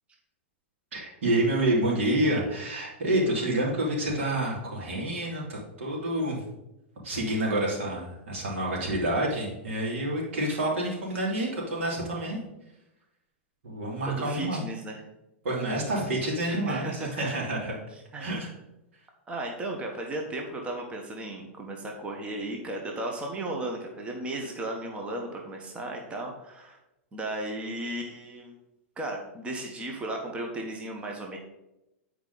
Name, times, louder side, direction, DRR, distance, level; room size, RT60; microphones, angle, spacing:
voice 1, 0.9-6.4 7.0-12.4 13.6-14.6 15.4-17.8 18.2-18.5, right 1 dB, 75° right, -3 dB, 2.8 m, -28 dB
voice 2, 14.1-15.0 16.5-17.3 18.1-18.5 19.3-26.8 27.1-28.6 29.0-31.4, right 1 dB, 15° right, 1 dB, 1.1 m, -35 dB
9.3 x 4.8 x 4.0 m, 0.92 s
hypercardioid pair, 130°, 7 cm